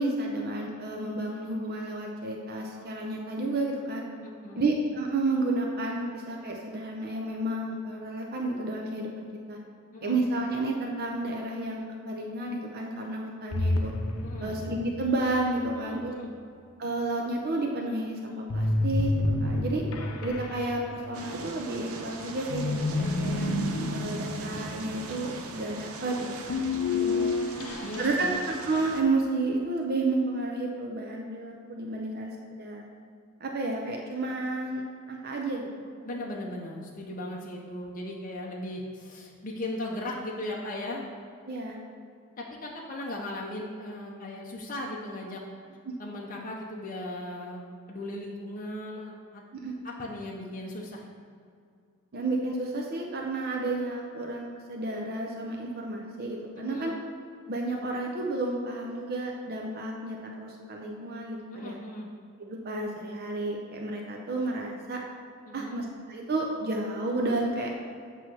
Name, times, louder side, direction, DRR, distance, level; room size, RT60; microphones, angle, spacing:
voice 1, 0.0-4.0 4.5-9.6 10.0-13.9 14.4-16.1 16.8-19.1 19.4-19.8 20.2-23.5 23.9-26.7 28.0-32.8 33.4-34.8 35.1-35.9 41.5-41.8 49.5-49.7 52.1-56.9 57.5-61.8 62.5-65.0 65.5-67.8, right 2 dB, 45° right, 0 dB, 0.6 m, -31 dB
voice 2, 4.2-4.7 9.9-10.3 14.2-14.6 15.7-16.3 26.9-28.4 36.0-41.1 42.4-45.4 46.0-47.6 47.9-49.4 49.8-51.0 56.6-57.0 61.5-62.1 65.5-65.8, left 1 dB, 40° left, -2 dB, 0.7 m, -37 dB
sound 1, 13.5-15.7 18.5-21.6 22.5-25.5 26.5-28.4, left 2 dB, 75° left, 0.6 m, -30 dB
sound 2, 21.1-29.0, right 3 dB, 85° right, 0.7 m, -41 dB
8.1 x 3.0 x 6.1 m, 2.3 s
head